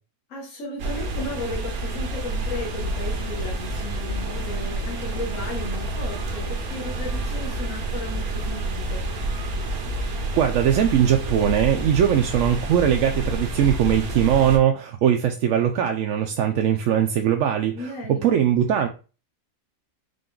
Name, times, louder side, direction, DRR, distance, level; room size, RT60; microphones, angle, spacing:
voice 1, 0.3-9.0 17.7-18.4, left 1 dB, 60° left, -4 dB, 1.6 m, -35 dB
sound 1, 0.8-14.6, right 1 dB, 85° right, 1.4 m, -29 dB
voice 2, 10.4-17.9 18.2-18.9, right 9 dB, 70° right, 4 dB, 0.9 m, -20 dB
5.1 x 2.5 x 3.7 m, 0.34 s
omnidirectional pair, 1.5 m